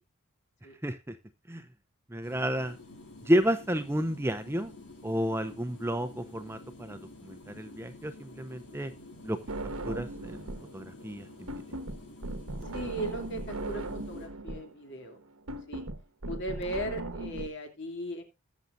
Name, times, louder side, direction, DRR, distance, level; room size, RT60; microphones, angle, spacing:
voice 1, 0.8-1.2 1.5-1.7 2.1-2.8 3.2-4.7 5.0-8.9 9.2-9.4 9.9-11.5, equal, 10° right, 10 dB, 0.7 m, -31 dB
sound 1, 2.2-14.3, left 2 dB, 90° left, 4.3 m, -50 dB
sound 2, 9.5-10.7 11.0-17.5, right 2 dB, 85° right, 1.3 m, -38 dB
voice 2, 12.7-15.2 15.7-15.8 16.3-18.2, right 1 dB, 55° left, 4 dB, 2.8 m, -37 dB
21.5 x 7.2 x 2.6 m, 0.25 s
head